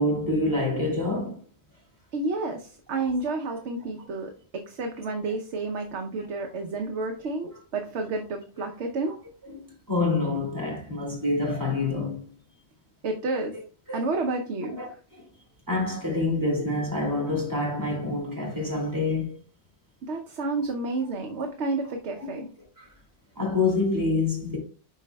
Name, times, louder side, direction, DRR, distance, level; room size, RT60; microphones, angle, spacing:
voice 1, 0.0-1.4 2.9-3.0 9.4-12.2 13.9-14.1 14.8-14.9 15.2-15.3 15.7-19.4 22.2-22.3 22.8-22.9 23.4-24.6, left 2 dB, 15° right, 2.4 m, -27 dB
voice 2, 2.1-9.2 13.0-13.6 13.9-14.8 20.0-22.5, right 3 dB, 70° right, 1.1 m, -30 dB
11.0 x 4.2 x 2.2 m
omnidirectional pair, 1.2 m